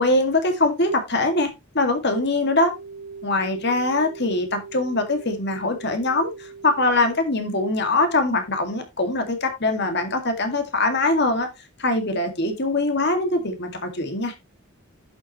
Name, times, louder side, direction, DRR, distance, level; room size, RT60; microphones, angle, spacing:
voice 1, 0.0-2.7 3.2-11.5 11.8-14.3, left 2 dB, 50° left, 2.1 m, -22 dB
sound 1, 2.2-7.1, right 5 dB, 85° right, 2.5 m, -41 dB
11.0 x 7.5 x 3.1 m
head